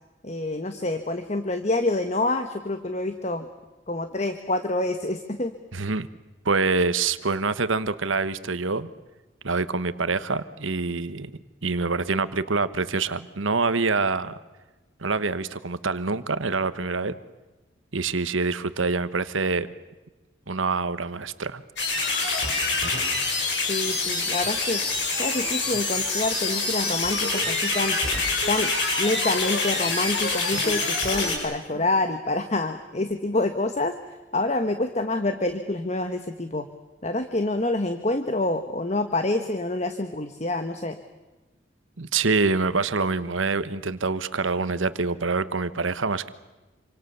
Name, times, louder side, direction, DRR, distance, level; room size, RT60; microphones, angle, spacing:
voice 1, 0.2-3.5 3.9-5.5 23.7-24.8 25.1-28.0 28.5-28.7 29.0-34.0 34.3-36.7 37.0-41.0, left 2 dB, 35° left, 8 dB, 1.2 m, -27 dB
voice 2, 5.7-6.1 6.4-8.9 9.4-11.3 11.6-14.4 15.0-17.2 17.9-19.7 20.5-21.6 42.0-46.3, right 4 dB, 85° right, 14 dB, 1.2 m, -25 dB
sound 1, 21.8-31.4, left 3 dB, 65° left, 6.9 m, -26 dB
27.0 x 26.0 x 6.9 m, 1.2 s
head